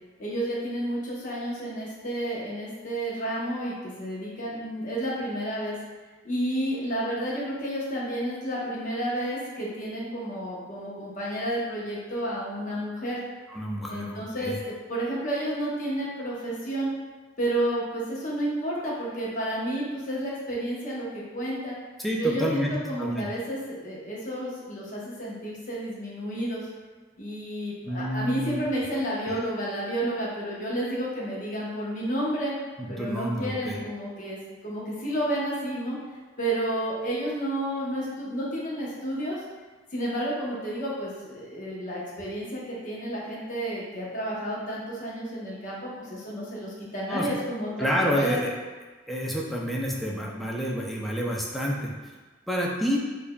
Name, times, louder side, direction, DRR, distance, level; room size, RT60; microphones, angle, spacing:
voice 1, 0.2-5.8 6.2-13.2 13.9-16.9 17.4-21.7 22.1-26.6 27.2-32.5 32.9-34.4 34.6-36.0 36.4-39.4 39.9-48.4, right 1 dB, 45° left, -6 dB, 0.9 m, -31 dB
voice 2, 13.5-14.6 22.0-22.7 23.0-23.3 27.8-28.6 29.3-29.4 32.8-33.8 47.1-47.3 47.8-48.6 49.1-51.9 52.5-53.0, equal, ahead, -3 dB, 0.4 m, -28 dB
4.8 x 2.5 x 2.2 m, 1.3 s
head